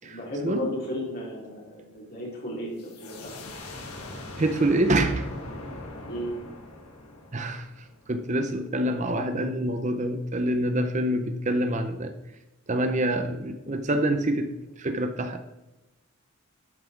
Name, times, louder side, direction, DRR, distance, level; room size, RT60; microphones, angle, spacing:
voice 1, 0.0-3.5 6.1-6.4, equal, 45° left, -4 dB, 4.0 m, -34 dB
sound 1, 2.8-8.3, left 2 dB, 90° left, 1.7 m, -41 dB
voice 2, 4.4-5.3 7.3-12.1 12.7-15.5, right 1 dB, 35° right, 8 dB, 0.6 m, -26 dB
12.0 x 5.9 x 4.6 m, 1.0 s
head